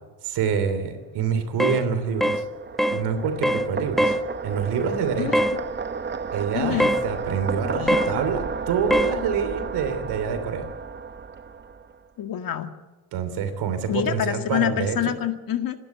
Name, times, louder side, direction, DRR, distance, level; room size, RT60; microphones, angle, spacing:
voice 1, 0.2-2.4 2.9-4.1 4.4-5.3 6.3-10.7 13.1-15.0, right 6 dB, 85° right, 9 dB, 3.2 m, -26 dB
sound 1, 1.4-12.0, right 5 dB, 30° right, 1.1 m, -33 dB
sound 2, 1.6-1.8 2.2-2.4 2.8-3.0 3.4-3.7 4.0-4.2 5.3-5.6 6.8-7.0 7.9-8.1 8.9-9.1, equal, ahead, 0.7 m, -22 dB
voice 2, 6.5-6.9 7.7-8.2 12.2-12.7 13.9-15.8, left 11 dB, 60° left, 7 dB, 1.9 m, -26 dB
27.0 x 12.0 x 8.6 m, 1.2 s
cardioid pair, 100°, 39 cm